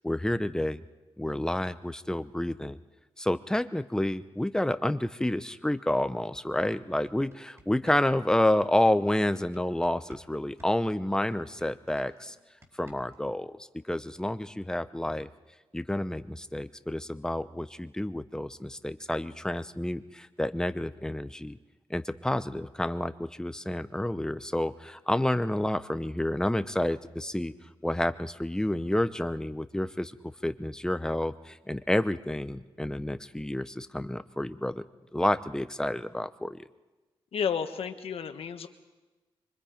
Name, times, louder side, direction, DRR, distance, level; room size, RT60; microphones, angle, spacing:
voice 1, 0.0-0.8 1.2-2.8 3.2-12.4 12.8-15.3 15.7-21.6 21.9-27.5 27.8-34.8 35.1-36.7, left 1 dB, 5° left, 12 dB, 0.8 m, -29 dB
sound 1, 6.0-6.1 6.4-10.3 10.6-13.3, right 1 dB, 30° right, 4.3 m, -56 dB
voice 2, 37.3-38.7, left 7 dB, 75° left, 7 dB, 1.5 m, -31 dB
25.0 x 24.0 x 5.1 m, 1.2 s
cardioid pair, 90°, 10 cm